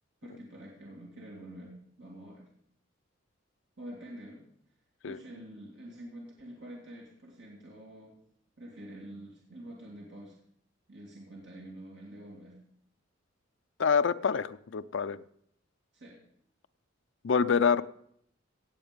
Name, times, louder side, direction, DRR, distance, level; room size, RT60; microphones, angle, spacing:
voice 1, 0.2-2.5 3.8-4.4 5.0-8.2 8.6-10.4 10.9-12.5 15.9-16.2, right 1 dB, 60° right, -3 dB, 2.5 m, -47 dB
voice 2, 13.8-15.2 17.2-17.8, left 6 dB, 65° left, 12 dB, 0.5 m, -26 dB
16.5 x 7.9 x 5.1 m, 0.70 s
head